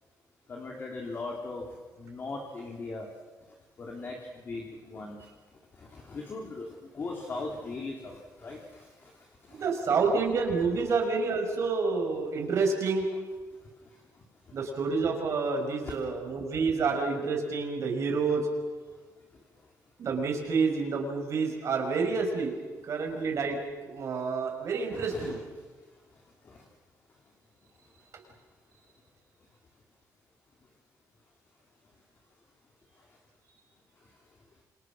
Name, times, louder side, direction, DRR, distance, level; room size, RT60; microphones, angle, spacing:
voice 1, 0.5-1.6 2.0-3.1 3.8-4.1 4.4-5.2 5.9-6.7 6.9-8.6 9.6-9.7 24.9-25.4, left 3 dB, 35° left, 0 dB, 3.2 m, -38 dB
voice 2, 9.5-13.0 14.5-18.5 20.0-22.6 22.9-23.6 23.8-25.4, right 4 dB, 50° right, 2 dB, 5.7 m, -28 dB
28.0 x 27.0 x 6.2 m, 1.3 s
cardioid pair, 160°, 6 cm